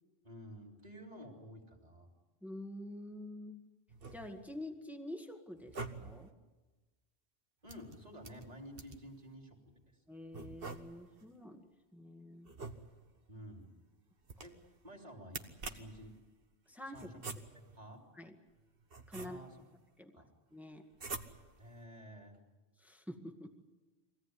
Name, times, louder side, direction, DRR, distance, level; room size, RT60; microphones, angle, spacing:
voice 1, 0.2-2.1 7.6-9.8 13.3-13.7 14.4-14.6 14.8-16.2 16.9-18.0 19.2-19.7 20.1-20.3 21.6-22.4, equal, 35° right, 1 dB, 3.5 m, -52 dB
voice 2, 2.4-3.6 4.1-6.3 10.1-11.6 11.9-12.5 16.7-17.1 18.1-18.4 19.1-19.4 20.0-20.2 20.5-20.8 22.8-23.5, left 1 dB, ahead, 4 dB, 1.8 m, -47 dB
sound 1, 3.9-4.6 5.5-6.3 7.7-9.1 10.3-11.2 12.4-13.2 14.2-14.8 15.3-16.1 17.0-17.8 18.5-19.7 20.9-21.6, right 3 dB, 60° right, 1.6 m, -47 dB
24.0 x 17.5 x 9.8 m, 1.2 s
omnidirectional pair, 1.1 m